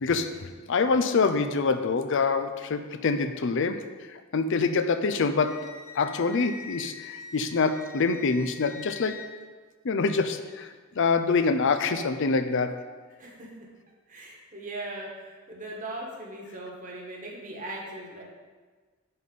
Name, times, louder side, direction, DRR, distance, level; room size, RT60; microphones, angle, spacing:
voice 1, 0.0-5.7 5.9-9.2 9.8-10.7 11.0-12.8, left 4 dB, 55° left, 9 dB, 0.5 m, -26 dB
Wind instrument woodwind instrument, 5.4-9.3, left 5 dB, 40° left, 1.5 m, -44 dB
voice 2, 13.2-13.7 14.1-18.2, right 1 dB, 35° right, -2 dB, 1.5 m, -39 dB
9.4 x 4.2 x 5.4 m, 1.4 s
head